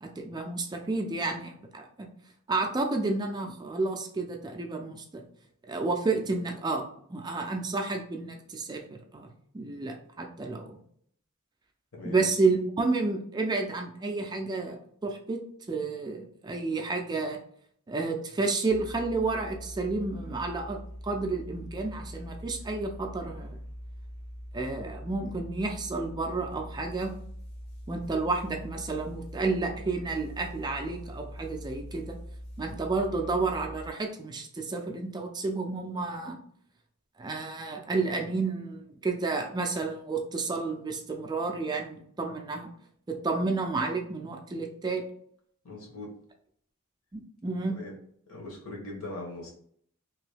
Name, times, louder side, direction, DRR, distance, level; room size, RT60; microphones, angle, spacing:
voice 1, 0.0-2.1 2.5-5.2 5.7-8.8 9.1-10.8 12.0-15.4 15.7-17.4 17.9-23.6 24.5-27.1 27.9-32.2 32.6-36.4 37.2-42.7 43.1-45.0 47.1-47.8, right 3 dB, 20° right, 3 dB, 0.3 m, -31 dB
voice 2, 11.9-12.3 45.6-46.1 47.7-47.9 48.3-49.5, left 2 dB, 70° left, 0 dB, 1.1 m, -40 dB
sound 1, 18.7-33.9, equal, 45° left, 0.7 m, -43 dB
2.9 x 2.7 x 3.3 m, 0.64 s
head